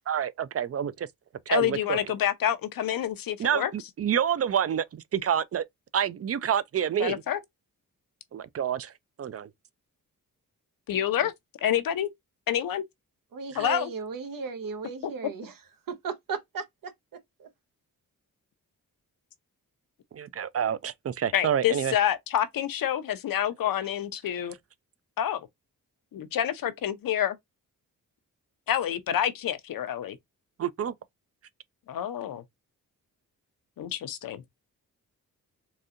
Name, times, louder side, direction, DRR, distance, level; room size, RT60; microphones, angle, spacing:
voice 1, 0.1-1.1 1.5-2.0 3.4-5.6 5.9-7.2 8.3-8.9 9.2-9.5 20.1-21.9 30.6-30.9, right 9 dB, 45° right, 0.4 m, -28 dB
voice 2, 1.5-3.7 7.0-7.4 10.9-11.3 11.6-12.1 12.5-12.8 13.5-13.9 15.0-15.1 21.3-24.5 25.2-25.4 26.1-27.4 28.7-30.2 31.9-32.4 33.8-34.4, left 10 dB, 80° left, 0.7 m, -28 dB
voice 3, 13.3-15.5 15.9-17.5, right 5 dB, 75° right, 0.9 m, -36 dB
3.9 x 2.7 x 2.4 m
cardioid pair, 85°, 34 cm